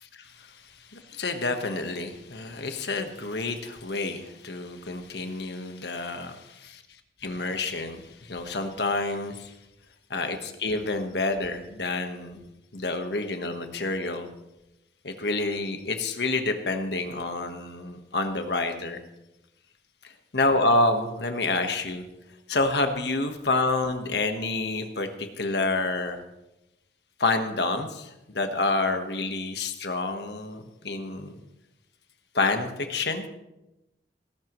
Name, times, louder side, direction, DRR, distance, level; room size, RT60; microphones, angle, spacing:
voice 1, 0.9-6.6 7.2-9.5 10.1-12.4 12.7-14.3 15.0-19.0 20.3-22.0 22.5-26.2 27.2-31.3 32.3-33.3, left 2 dB, 75° left, 6 dB, 1.4 m, -28 dB
19.0 x 11.5 x 3.2 m, 0.93 s
head